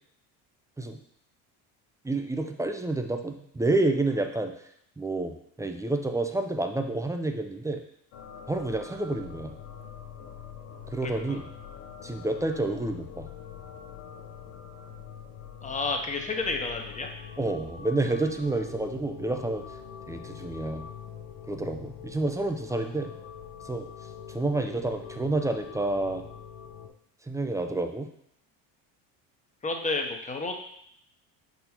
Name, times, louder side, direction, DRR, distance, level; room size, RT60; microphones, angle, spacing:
voice 1, 2.0-4.5 5.0-7.8 8.5-9.6 10.9-11.5 12.0-13.3 17.4-19.6 20.1-20.9 21.5-23.1 23.6-23.9 24.3-26.2 27.2-28.1, right 2 dB, 10° right, 6 dB, 0.4 m, -29 dB
sound 1, 8.1-26.9, left 8 dB, 80° left, 1.0 m, -44 dB
voice 2, 11.0-11.4 15.6-17.1 29.6-30.5, left 3 dB, 15° left, 3 dB, 0.9 m, -31 dB
5.2 x 4.1 x 4.4 m, 0.70 s
cardioid pair, 105°, 42 cm